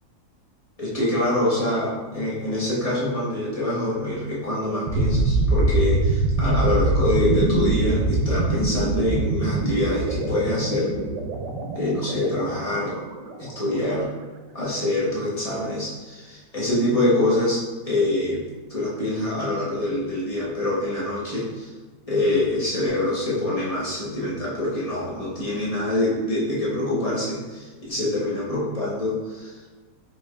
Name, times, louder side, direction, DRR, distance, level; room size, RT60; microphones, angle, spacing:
voice 1, 0.8-10.9 11.7-12.9 13.4-14.1 14.5-18.4 18.7-21.7 22.1-29.6, left 1 dB, 30° left, -7 dB, 0.7 m, -25 dB
sound 1, 4.9-13.7, right 2 dB, 75° right, 1.1 m, -24 dB
4.7 x 3.6 x 2.3 m, 1.3 s
omnidirectional pair, 2.0 m